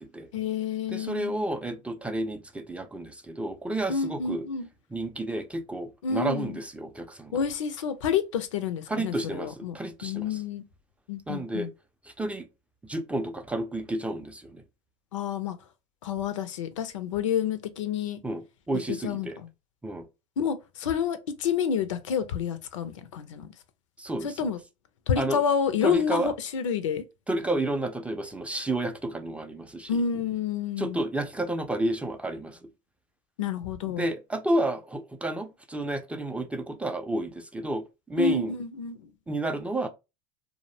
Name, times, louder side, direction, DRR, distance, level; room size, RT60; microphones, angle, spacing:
voice 1, 0.3-1.4 3.9-4.7 6.0-6.5 7.3-9.8 10.0-10.6 11.1-11.7 15.1-15.6 16.0-18.2 18.9-19.5 20.4-23.5 24.2-24.6 25.1-27.0 29.9-31.0 33.4-34.0 38.2-39.0, left 7 dB, 80° left, 0.4 m, -29 dB
voice 2, 0.9-4.5 4.9-7.3 8.9-10.4 11.3-11.7 12.2-12.5 12.8-14.6 18.2-19.4 19.8-20.1 24.0-24.5 25.2-25.4 25.8-26.3 27.3-30.0 30.8-32.6 33.9-38.5 39.3-39.9, right 1 dB, 10° right, 0.4 m, -31 dB
2.6 x 2.0 x 2.7 m
hypercardioid pair, 90°, 16 cm